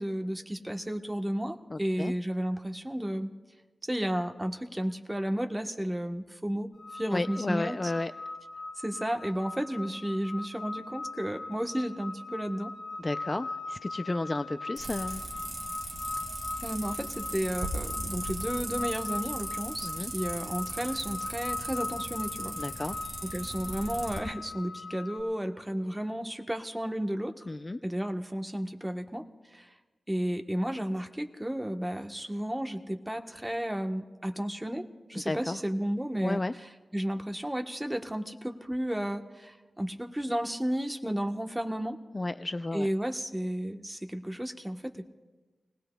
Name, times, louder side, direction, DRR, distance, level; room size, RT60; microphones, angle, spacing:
voice 1, 0.0-3.3 3.9-7.9 8.8-12.7 16.6-22.6 23.2-27.4 27.8-29.3 29.5-29.7 30.1-42.0 42.7-45.1, equal, 10° right, 5 dB, 1.1 m, -33 dB
voice 2, 1.7-2.1 7.1-8.1 13.0-15.2 19.8-20.1 22.6-23.0 27.5-27.8 35.3-35.6 36.2-36.5 42.1-42.9, left 2 dB, 30° left, 10 dB, 0.4 m, -32 dB
sound 1, 6.8-25.2, left 3 dB, 75° left, 2.8 m, -40 dB
sound 2, 14.8-24.2, right 1 dB, 35° right, 3.7 m, -38 dB
29.5 x 19.5 x 2.3 m, 1.3 s
wide cardioid pair, 75°, 0 cm